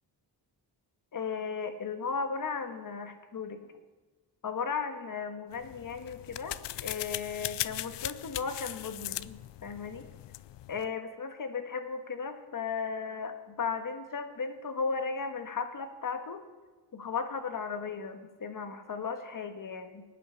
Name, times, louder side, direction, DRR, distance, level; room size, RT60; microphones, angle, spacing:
voice 1, 1.1-3.6 4.4-10.1 10.7-16.4 16.9-20.0, left 5 dB, 50° left, 8 dB, 1.6 m, -36 dB
sound 1, 5.5-10.9, left 14 dB, 75° left, 0.6 m, -39 dB
19.0 x 9.3 x 7.1 m, 1.3 s
wide cardioid pair, 140°, 42 cm